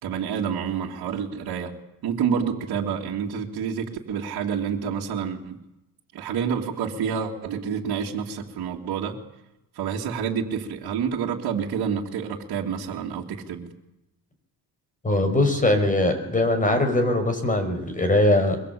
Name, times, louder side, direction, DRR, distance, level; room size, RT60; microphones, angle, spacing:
voice 1, 0.0-1.7 2.0-5.6 6.1-9.2 9.7-13.7, right 7 dB, 65° right, -2 dB, 2.8 m, -28 dB
voice 2, 15.0-18.6, left 1 dB, 20° left, 7 dB, 5.7 m, -21 dB
23.5 x 22.0 x 8.6 m, 0.90 s
cardioid pair, 120°, 38 cm